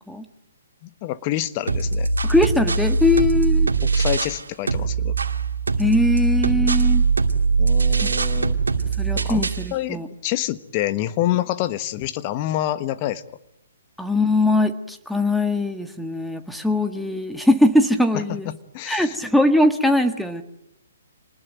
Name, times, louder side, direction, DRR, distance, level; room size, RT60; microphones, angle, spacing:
voice 1, 0.8-2.1 3.8-5.1 7.6-8.6 9.1-10.0 10.2-13.2 18.1-19.2, left 14 dB, 35° left, 12 dB, 1.4 m, -27 dB
sound 1, 1.7-4.4 4.7-9.7, right 4 dB, 85° right, 2.1 m, -21 dB
voice 2, 2.2-3.7 5.8-7.0 8.0-8.1 9.0-10.1 14.0-18.5 18.9-20.4, left 1 dB, ahead, 8 dB, 1.8 m, -21 dB
27.5 x 20.0 x 9.3 m, 0.82 s
hypercardioid pair, 135°, 0 cm